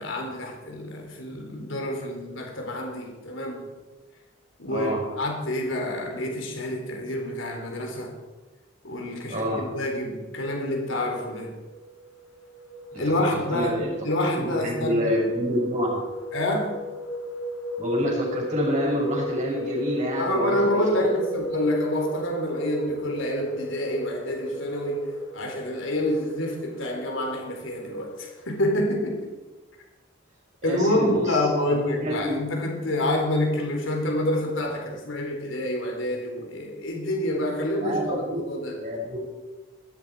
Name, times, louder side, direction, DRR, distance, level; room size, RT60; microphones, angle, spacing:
voice 1, 0.0-3.7 4.6-8.2 8.8-11.6 13.0-13.8 14.0-15.0 16.3-16.8 20.2-29.3 30.6-38.9, left 1 dB, 70° left, 2 dB, 3.9 m, -27 dB
voice 2, 4.7-5.0 9.3-9.6 12.9-13.9 14.3-16.0 17.8-21.1 30.6-31.4 32.0-32.4 37.8-38.4 38.8-39.3, equal, 35° right, -2 dB, 6.4 m, -27 dB
sound 1, 11.1-28.7, equal, 85° left, 2.5 m, -37 dB
17.5 x 13.5 x 4.9 m, 1.2 s
head